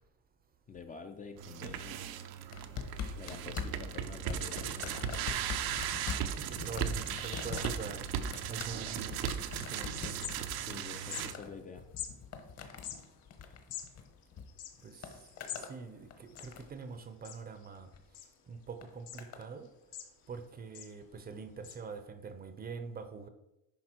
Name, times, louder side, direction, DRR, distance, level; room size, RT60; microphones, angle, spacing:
voice 1, 0.7-2.0 3.2-5.0 10.6-11.9, left 5 dB, 20° left, 0.5 m, -47 dB
sound 1, 1.4-11.3, right 10 dB, 70° right, 0.8 m, -37 dB
sound 2, 2.5-14.4 14.7-15.8 16.1-16.8 17.7-18.0 18.8-19.5 20.3-20.4, left 6 dB, 40° left, 1.2 m, -43 dB
voice 2, 6.3-8.1 8.5-10.2 14.8-15.1 15.6-17.9 18.5-19.7 20.3-23.3, right 5 dB, 25° right, 0.7 m, -44 dB
sound 3, 10.2-10.8 11.0-11.3 12.0-12.1 12.7-15.7 16.0-16.1 16.3-16.9 17.2-17.7 18.1-18.6 19.1-19.2 19.6-20.4 20.7-20.9 21.6-21.8, left 10 dB, 70° left, 1.2 m, -44 dB
10.5 x 5.3 x 4.5 m
cardioid pair, 155°, 37 cm